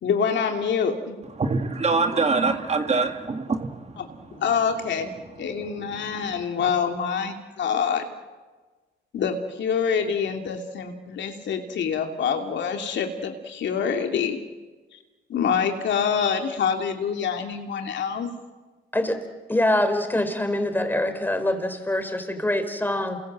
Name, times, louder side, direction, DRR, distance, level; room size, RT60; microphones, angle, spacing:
voice 1, 0.0-1.2 4.0-4.1 4.3-8.1 9.1-14.4 15.3-18.3, left 6 dB, 65° left, 4 dB, 2.9 m, -26 dB
voice 2, 1.4-4.2 6.0-6.1, right 4 dB, 35° right, 6 dB, 2.1 m, -24 dB
voice 3, 19.5-23.2, left 1 dB, 10° left, 7 dB, 4.4 m, -24 dB
28.5 x 23.0 x 7.6 m, 1.3 s
cardioid pair, 90°, 20 cm